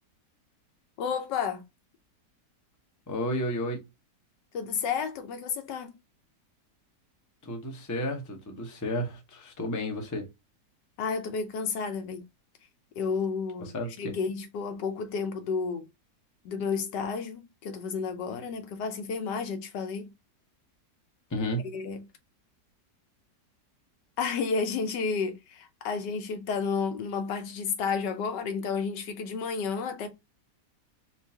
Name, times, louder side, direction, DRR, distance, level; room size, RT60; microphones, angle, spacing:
voice 1, 1.0-1.6 4.5-5.9 11.0-12.2 13.0-15.9 16.4-20.1 21.7-22.1 24.2-30.1, left 5 dB, 85° left, 1.3 m, -31 dB
voice 2, 3.1-3.8 7.4-10.2 13.6-14.1 21.3-21.7, equal, 20° left, 0.4 m, -32 dB
4.4 x 2.4 x 2.7 m
omnidirectional pair, 1.8 m